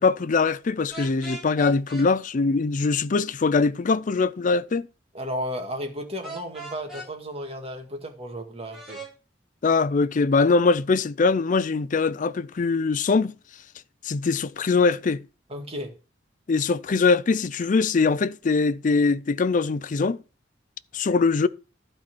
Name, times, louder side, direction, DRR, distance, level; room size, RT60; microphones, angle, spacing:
voice 1, 0.0-4.9 9.6-13.3 14.0-15.2 16.5-20.2 20.9-21.5, left 4 dB, 45° left, 0.4 m, -22 dB
sound 1, 0.9-2.1 6.2-7.1 8.7-9.1, right 1 dB, ahead, 3.3 m, -38 dB
voice 2, 5.1-9.0 15.5-15.9, equal, 35° right, 2.1 m, -33 dB
12.0 x 4.4 x 6.1 m
head